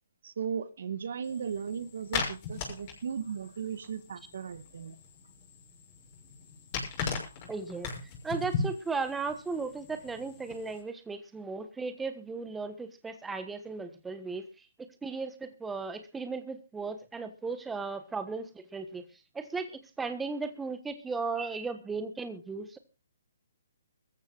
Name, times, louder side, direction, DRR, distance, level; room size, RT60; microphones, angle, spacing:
voice 1, 0.2-5.0, right 7 dB, 60° right, 1.5 m, -36 dB
sound 1, 1.2-10.8, left 5 dB, 35° left, 6.6 m, -39 dB
voice 2, 7.5-7.9 8.2-14.7 15.0-19.1 19.3-22.8, right 4 dB, 5° right, 1.4 m, -36 dB
23.0 x 14.5 x 2.4 m
hypercardioid pair, 145°, 0 cm